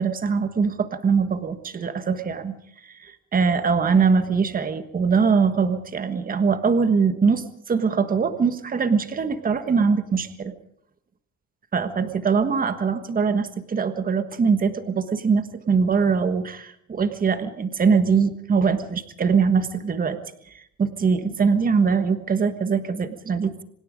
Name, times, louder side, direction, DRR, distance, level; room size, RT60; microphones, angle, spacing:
voice 1, 0.0-2.5 2.8-10.5 11.7-20.2 20.5-23.6, right 5 dB, 25° right, 10 dB, 1.4 m, -22 dB
25.5 x 20.0 x 5.2 m, 0.70 s
cardioid pair, 150°, 34 cm